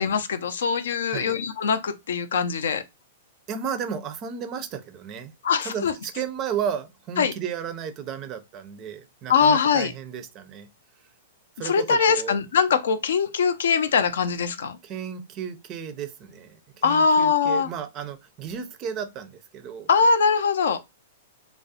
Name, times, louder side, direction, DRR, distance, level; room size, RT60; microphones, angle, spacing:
voice 1, 0.0-2.8 5.4-5.9 7.2-7.3 9.3-9.9 11.6-14.8 16.8-17.7 19.9-20.8, left 5 dB, 80° left, 0.4 m, -22 dB
voice 2, 3.5-5.3 5.6-10.7 11.6-12.4 14.8-19.9, right 7 dB, 30° right, 0.4 m, -33 dB
2.4 x 2.0 x 2.6 m
hypercardioid pair, 135°, 0 cm